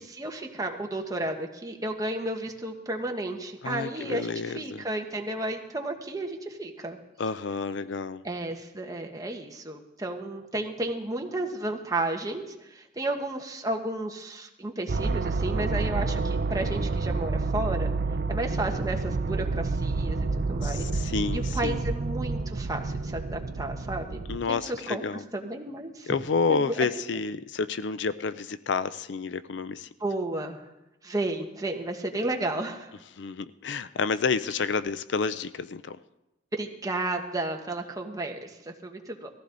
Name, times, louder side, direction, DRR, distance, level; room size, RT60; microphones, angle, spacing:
voice 1, 0.0-7.0 8.2-17.9 18.3-25.0 25.3-26.1 26.5-26.9 30.0-30.6 31.0-32.9 36.6-39.3, right 2 dB, 20° right, 3 dB, 1.3 m, -33 dB
voice 2, 3.6-4.8 7.2-8.2 20.6-21.8 24.3-25.2 26.1-29.9 33.2-36.0, left 4 dB, 70° left, 14 dB, 0.5 m, -29 dB
sound 1, 14.9-24.4, right 3 dB, 55° right, 0.5 m, -29 dB
18.5 x 15.0 x 3.9 m, 0.94 s
head